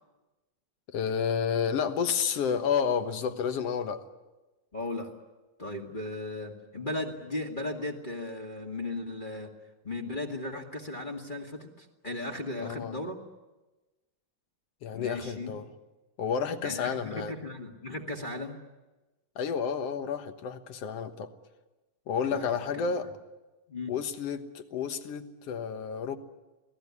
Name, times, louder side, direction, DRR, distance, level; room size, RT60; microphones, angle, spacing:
voice 1, 0.9-4.1 12.6-13.0 14.8-15.7 16.2-17.3 19.4-21.3 22.1-23.1 23.9-26.2, left 7 dB, 60° left, 8 dB, 2.1 m, -30 dB
voice 2, 4.7-5.1 5.6-9.5 9.8-13.2 14.9-15.5 16.6-18.6 22.3-22.8 23.7-23.9, left 2 dB, 20° left, 0 dB, 1.6 m, -36 dB
26.0 x 18.5 x 9.7 m, 1.1 s
omnidirectional pair, 3.5 m